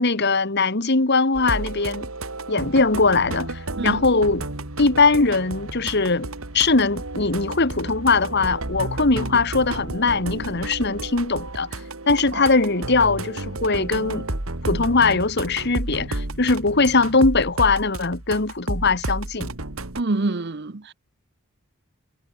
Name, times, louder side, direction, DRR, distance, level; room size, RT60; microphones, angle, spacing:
voice 1, 0.0-2.1 2.5-4.5 4.8-6.3 6.5-11.7 12.1-14.2 14.6-19.5, left 3 dB, 50° left, 1.7 m, -21 dB
sound 1, 1.3-20.0, right 2 dB, 75° right, 2.8 m, -32 dB
voice 2, 20.0-20.9, right 2 dB, 50° right, 0.9 m, -26 dB
head